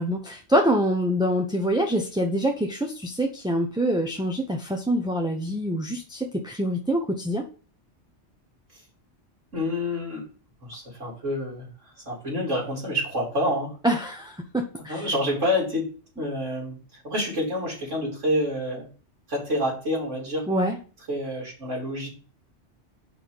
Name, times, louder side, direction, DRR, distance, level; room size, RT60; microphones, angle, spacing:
voice 1, 0.0-7.5 13.8-15.0 20.5-20.8, equal, 5° right, 2 dB, 0.9 m, -25 dB
voice 2, 9.5-10.3 10.6-13.7 14.8-18.9 19.3-20.5 21.1-22.1, left 1 dB, 90° right, -3 dB, 3.8 m, -28 dB
6.1 x 5.8 x 7.0 m, 0.37 s
omnidirectional pair, 1.2 m